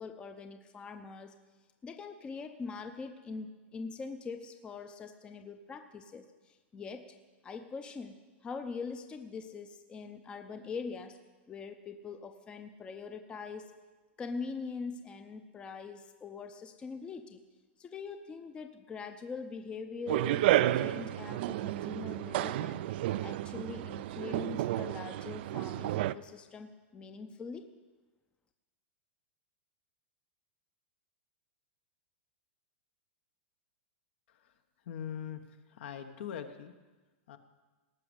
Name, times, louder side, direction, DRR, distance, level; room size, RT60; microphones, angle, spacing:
voice 1, 0.0-1.4 1.8-7.1 7.4-11.2 11.5-13.7 14.2-17.4 17.8-20.5 20.8-22.8 23.2-27.7, left 4 dB, 15° left, 7 dB, 0.6 m, -43 dB
sound 1, 20.1-26.1, right 14 dB, 55° right, 0.4 m, -31 dB
voice 2, 34.9-35.4 35.7-36.7 37.3-37.4, left 8 dB, 65° left, 8 dB, 1.2 m, -41 dB
18.0 x 6.3 x 8.1 m, 1.3 s
supercardioid pair, 150°, 7 cm